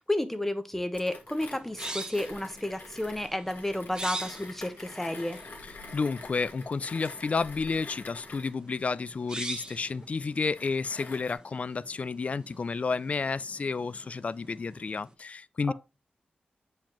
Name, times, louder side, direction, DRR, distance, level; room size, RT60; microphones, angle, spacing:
voice 1, 0.0-5.4 15.7-15.8, left 1 dB, 10° left, 0.9 m, -31 dB
Mechanisms, 0.9-11.3, left 3 dB, 70° left, 1.6 m, -47 dB
sound 1, 1.3-15.1, right 2 dB, 25° right, 1.0 m, -45 dB
voice 2, 5.9-15.7, left 4 dB, 45° left, 0.3 m, -31 dB
7.2 x 4.8 x 2.9 m
wide cardioid pair, 105°, 3 cm